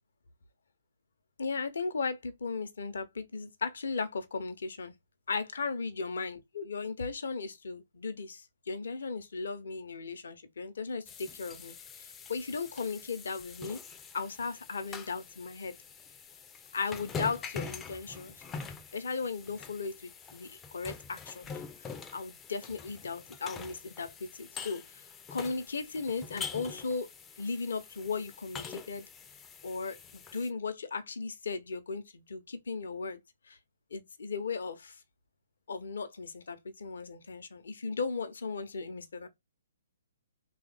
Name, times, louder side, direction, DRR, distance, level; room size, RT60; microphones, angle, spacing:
voice 1, 1.4-4.9 5.3-13.8 14.1-15.8 16.7-18.4 18.9-21.5 22.1-27.1 27.4-29.0 29.6-33.6 33.9-35.0 35.7-39.3, left 4 dB, 60° left, 0.6 m, -36 dB
sound 1, 11.0-30.5, left 5 dB, 15° left, 0.4 m, -45 dB
3.2 x 2.3 x 3.4 m
figure-of-eight pair, 125°, 0 cm